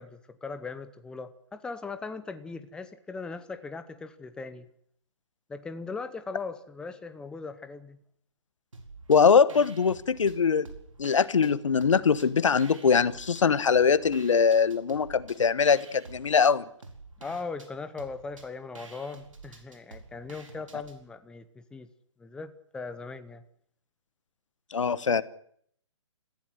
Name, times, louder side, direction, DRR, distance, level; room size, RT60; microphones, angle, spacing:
voice 1, 0.0-4.7 5.5-8.0 17.2-21.9 22.2-23.4, left 4 dB, 5° left, 11 dB, 0.8 m, -39 dB
sound 1, 8.7-9.2 9.5-11.5 11.8-13.4 13.7-21.0, right 3 dB, 85° right, 4.6 m, -49 dB
voice 2, 9.1-10.7 11.0-16.6 24.7-25.2, left 6 dB, 75° left, 17 dB, 1.2 m, -22 dB
26.5 x 15.0 x 8.0 m, 0.65 s
hypercardioid pair, 145°, 16 cm